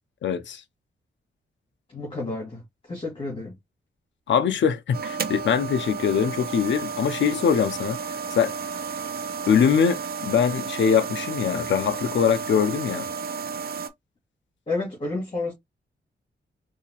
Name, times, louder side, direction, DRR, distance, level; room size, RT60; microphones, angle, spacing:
voice 1, 0.2-0.6 4.3-8.0 8.4-8.5 9.5-13.1, left 7 dB, 70° left, 0.6 m, -22 dB
voice 2, 1.9-3.5 14.7-15.5, left 3 dB, 25° left, 1.6 m, -31 dB
sound 1, 4.9-13.9, right 6 dB, 50° right, 0.6 m, -32 dB
3.8 x 2.7 x 2.9 m
wide cardioid pair, 165°, 20 cm